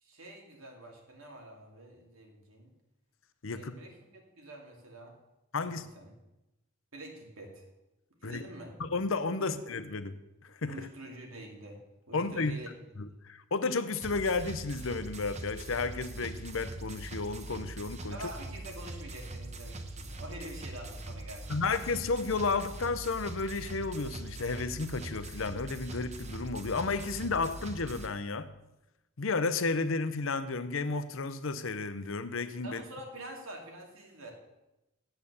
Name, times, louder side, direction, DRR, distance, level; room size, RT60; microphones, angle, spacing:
voice 1, 0.0-2.7 3.5-5.1 5.6-6.1 6.9-7.6 8.2-8.8 9.4-9.6 10.7-11.8 12.1-12.7 18.1-21.6 32.6-34.3, right 1 dB, 75° right, 2.6 m, -46 dB
voice 2, 3.4-3.7 5.5-5.9 8.2-8.4 8.8-10.7 12.1-12.5 13.0-18.2 21.5-28.5 29.2-32.8, left 4 dB, 65° left, 0.7 m, -32 dB
sound 1, 14.0-28.1, right 2 dB, 30° right, 0.9 m, -42 dB
8.8 x 8.0 x 7.0 m
head